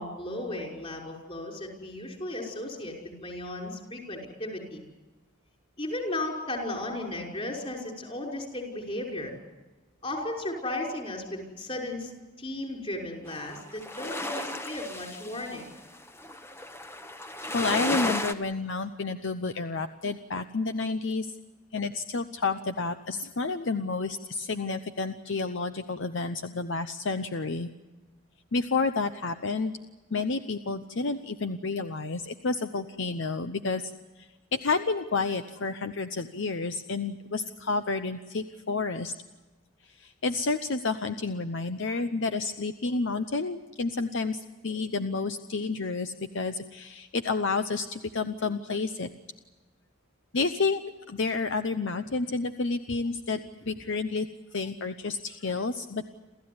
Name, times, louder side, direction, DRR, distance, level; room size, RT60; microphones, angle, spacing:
voice 1, 0.0-4.8 5.8-9.3 10.0-12.1 12.4-15.7, left 1 dB, 30° left, 0 dB, 5.7 m, -35 dB
sound 1, 13.3-18.3, left 1 dB, 10° left, 1.1 m, -34 dB
voice 2, 17.5-21.3 21.7-27.7 28.5-29.7 30.1-33.9 34.2-39.1 39.9-49.1 50.3-50.8 51.1-54.3 54.5-56.1, left 3 dB, 60° left, 9 dB, 0.8 m, -30 dB
28.5 x 14.5 x 9.6 m, 1.2 s
head